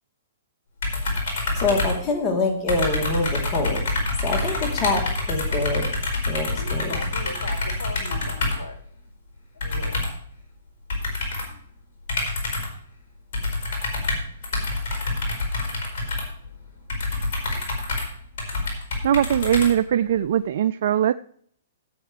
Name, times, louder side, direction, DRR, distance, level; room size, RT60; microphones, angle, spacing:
sound 1, 0.8-2.4 2.7-8.7 9.6-10.3 10.9-11.6 12.1-12.8 13.3-20.2, left 2 dB, 60° left, 5.0 m, -27 dB
voice 1, 1.5-3.8 4.2-5.9 6.3-7.0, left 2 dB, 30° left, 3.2 m, -25 dB
voice 2, 6.4-8.8 9.6-10.1 11.5-11.6, left 3 dB, 75° left, 2.0 m, -38 dB
voice 3, 19.0-21.1, right 10 dB, 60° right, 0.3 m, -20 dB
15.5 x 8.7 x 3.3 m
hypercardioid pair, 125°, 0 cm